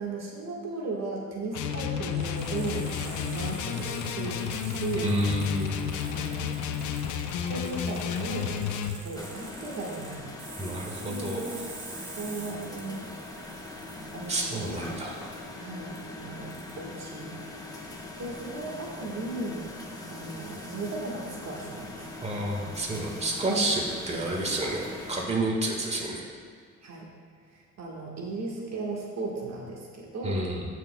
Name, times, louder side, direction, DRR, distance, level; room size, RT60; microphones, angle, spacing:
voice 1, 0.0-5.1 6.0-6.6 7.4-10.3 11.0-11.5 12.2-13.0 14.1-15.0 15.6-17.9 18.2-19.7 20.1-22.1 26.8-27.1 27.5-30.4, right 3 dB, 60° right, -2 dB, 1.5 m, -36 dB
sound 1, 1.5-9.0, left 8 dB, 75° left, 0.6 m, -32 dB
sound 2, 2.1-15.5 16.0-16.1 16.5-16.7, right 3 dB, 85° right, 2.0 m, -47 dB
voice 2, 5.0-5.8 10.6-11.5 14.3-15.2 22.2-26.2 30.2-30.7, right 1 dB, 20° right, -1 dB, 1.5 m, -29 dB
sound 3, 9.1-25.3, left 2 dB, 10° left, 1.1 m, -41 dB
14.5 x 6.4 x 2.2 m, 2.2 s
cardioid pair, 90°, 30 cm